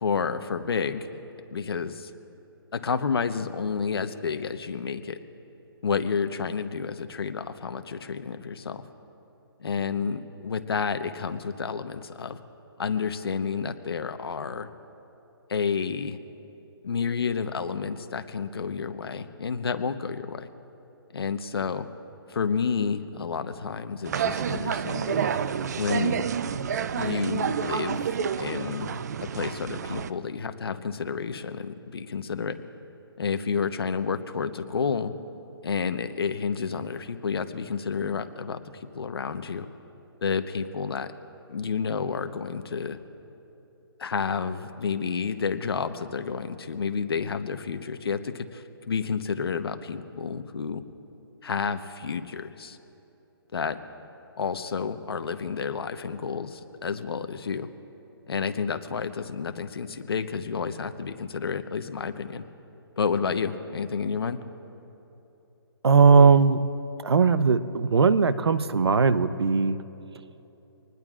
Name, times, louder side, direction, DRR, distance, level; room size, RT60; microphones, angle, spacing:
voice 1, 0.0-1.1 1.5-2.1 2.7-5.2 5.8-8.8 9.6-12.4 12.8-14.7 15.5-16.2 16.8-20.5 21.1-21.9 22.3-25.3 25.8-26.3 27.0-28.9 29.2-32.6 33.2-35.1 35.6-39.7 40.2-41.1 41.5-43.0 44.0-50.8 51.4-52.8 53.5-53.8 54.4-57.7 58.3-62.4 63.0-64.4, left 5 dB, 70° left, 9 dB, 1.0 m, -30 dB
sound 1, 24.0-30.1, right 7 dB, 40° right, 0.4 m, -29 dB
voice 2, 65.8-66.6 67.0-69.8, right 5 dB, 85° right, 13 dB, 0.8 m, -19 dB
25.0 x 20.0 x 2.5 m, 3.0 s
hypercardioid pair, 160°, 13 cm